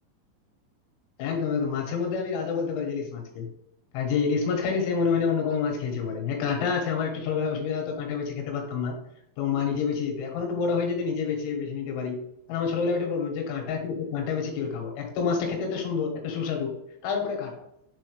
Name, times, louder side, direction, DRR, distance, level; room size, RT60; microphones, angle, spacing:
voice 1, 1.2-3.5 3.9-9.0 9.4-12.2 12.5-16.7 17.0-17.5, left 5 dB, 90° left, 2 dB, 3.7 m, -28 dB
7.6 x 4.0 x 3.1 m, 0.80 s
omnidirectional pair, 5.4 m